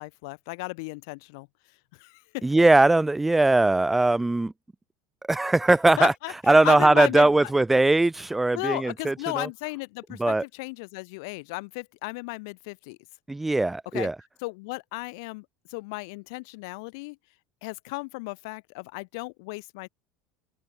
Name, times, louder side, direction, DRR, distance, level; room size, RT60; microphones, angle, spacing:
voice 1, 0.0-1.5 2.0-2.6 6.0-7.3 8.5-13.0 13.9-14.1 14.4-15.4 15.7-17.2 17.6-19.9, left 28 dB, 75° left, 1.2 m, -35 dB
voice 2, 2.4-4.5 5.3-6.1 6.5-9.5 10.2-10.4 13.3-14.2, right 2 dB, 10° right, 2.0 m, -20 dB
open air
supercardioid pair, 125°, 2 cm